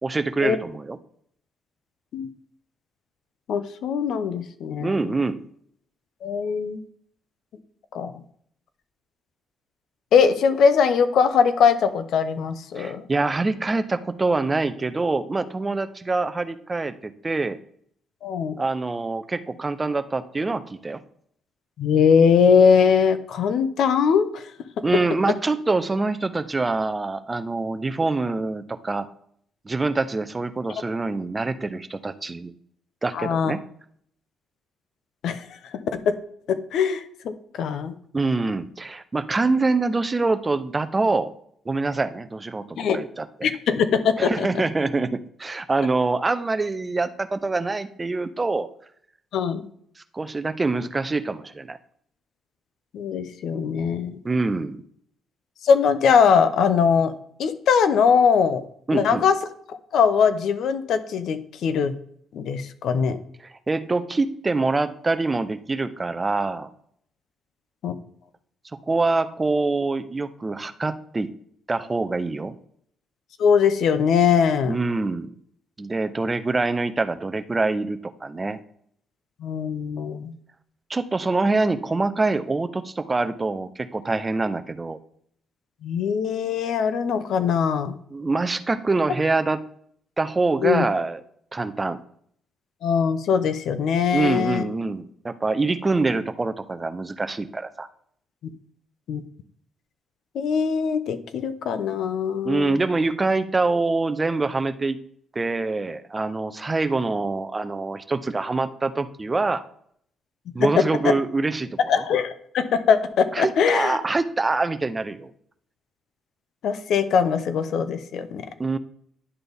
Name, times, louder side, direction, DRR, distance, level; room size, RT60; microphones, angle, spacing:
voice 1, 0.0-1.0 4.8-5.4 12.7-17.6 18.6-21.0 24.8-29.1 29.7-32.5 33.0-33.6 38.1-41.3 41.7-43.3 44.2-48.7 50.1-51.8 54.2-54.8 58.9-59.3 63.4-66.7 68.9-71.3 71.7-72.5 74.6-75.3 75.8-78.6 80.9-85.0 88.1-89.6 90.2-91.2 91.5-92.0 94.1-97.9 102.4-105.0 105.3-109.6 110.5-111.8 113.3-115.3 118.6-118.8, right 3 dB, 25° right, 11 dB, 0.6 m, -25 dB
voice 2, 3.5-4.9 6.2-6.8 7.9-8.1 10.1-13.0 18.2-18.6 21.8-24.4 33.1-33.5 35.2-35.4 36.5-37.9 42.8-43.0 43.4-44.5 49.3-49.7 52.9-54.2 55.6-57.1 57.4-58.6 58.9-59.3 59.7-61.9 62.3-63.2 67.8-67.9 73.4-74.8 79.4-80.3 85.8-87.9 90.6-90.9 92.8-94.6 98.4-98.5 99.1-99.2 100.3-102.7 110.6-110.7 111.9-114.0 116.6-118.4, left 6 dB, 75° left, 11 dB, 0.7 m, -21 dB
11.0 x 4.0 x 3.5 m, 0.64 s
cardioid pair, 90°, 0 cm